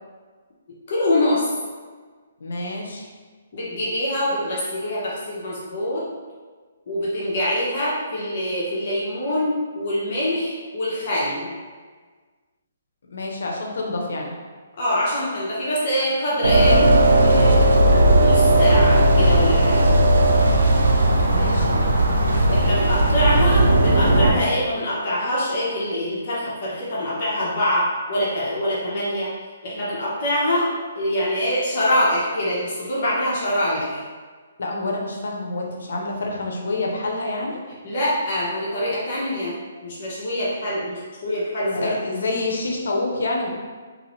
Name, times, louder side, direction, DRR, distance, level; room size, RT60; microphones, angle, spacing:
voice 1, 0.9-1.5 3.5-6.1 6.9-11.6 14.8-16.8 17.2-17.7 18.2-19.9 22.5-29.3 29.6-34.0 37.8-39.6 39.8-41.9, left 1 dB, 45° left, -7 dB, 0.9 m, -24 dB
voice 2, 2.4-3.1 13.1-14.4 21.3-21.8 34.6-37.6 41.7-43.5, left 2 dB, 75° left, 0 dB, 0.7 m, -27 dB
sound 1, 16.4-24.3, right 1 dB, 90° right, 0.5 m, -16 dB
3.0 x 2.6 x 3.1 m, 1.5 s
hypercardioid pair, 155°, 0 cm